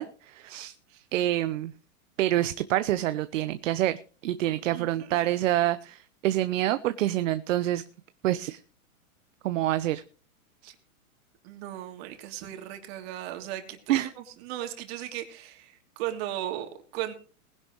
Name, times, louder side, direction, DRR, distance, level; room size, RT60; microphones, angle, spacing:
voice 1, 0.0-0.7 1.1-1.7 2.2-7.8 8.2-8.6 9.4-10.0 10.6-10.7 13.9-14.1, right 13 dB, 60° right, 12 dB, 0.9 m, -27 dB
voice 2, 4.5-5.1 10.7-10.8 11.4-17.1, right 12 dB, 45° right, 5 dB, 3.0 m, -37 dB
20.0 x 11.0 x 3.1 m, 0.37 s
hypercardioid pair, 140°, 43 cm